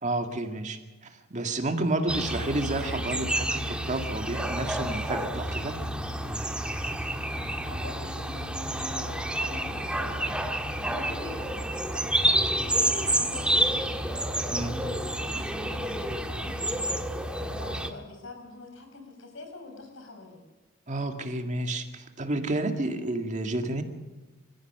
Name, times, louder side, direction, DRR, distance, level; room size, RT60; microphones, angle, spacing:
voice 1, 0.0-5.7 14.5-14.8 20.9-23.8, right 2 dB, 40° right, 5 dB, 2.0 m, -30 dB
sound 1, 2.1-17.9, right 1 dB, 5° right, 1.5 m, -29 dB
voice 2, 7.3-10.3 10.8-11.6 11.9-20.4, left 3 dB, 75° left, 4 dB, 5.6 m, -44 dB
27.0 x 15.5 x 6.8 m, 1.2 s
head